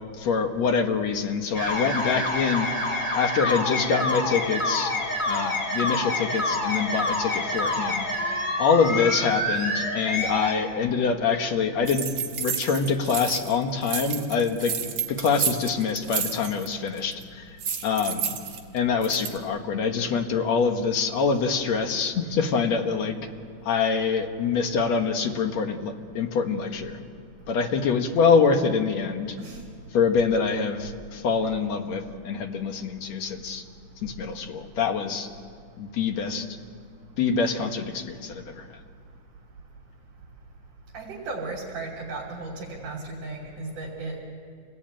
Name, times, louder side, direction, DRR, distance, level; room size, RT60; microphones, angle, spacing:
voice 1, 0.2-2.7 3.1-4.9 5.3-12.1 12.4-14.7 15.1-17.5 17.8-18.3 18.7-23.2 23.7-27.0 27.5-29.4 29.9-33.6 34.0-35.3 35.8-36.5 37.2-38.6, left 5 dB, 60° left, 5 dB, 2.6 m, -25 dB
sound 1, 1.5-10.5, left 1 dB, 15° left, 3.7 m, -27 dB
sound 2, 11.9-13.6 13.8-16.7 17.0-17.2 17.6-19.4, right 7 dB, 55° right, 2.9 m, -31 dB
voice 2, 40.9-44.2, right 3 dB, 70° right, -4 dB, 4.7 m, -35 dB
28.0 x 19.5 x 9.1 m, 2.1 s
omnidirectional pair, 3.8 m